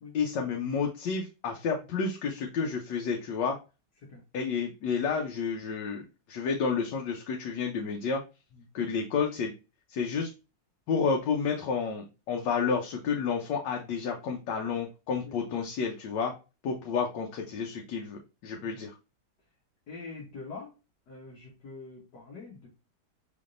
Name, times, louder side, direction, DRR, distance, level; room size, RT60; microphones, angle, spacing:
voice 1, 0.1-3.6 4.3-6.0 6.3-8.2 8.7-9.5 9.9-10.3 10.9-16.3 16.6-18.9, left 5 dB, 85° left, 1 dB, 1.4 m, -30 dB
voice 2, 19.9-20.7 21.1-22.7, left 4 dB, 70° left, -2 dB, 1.6 m, -44 dB
5.6 x 3.5 x 2.5 m, 0.30 s
omnidirectional pair, 1.9 m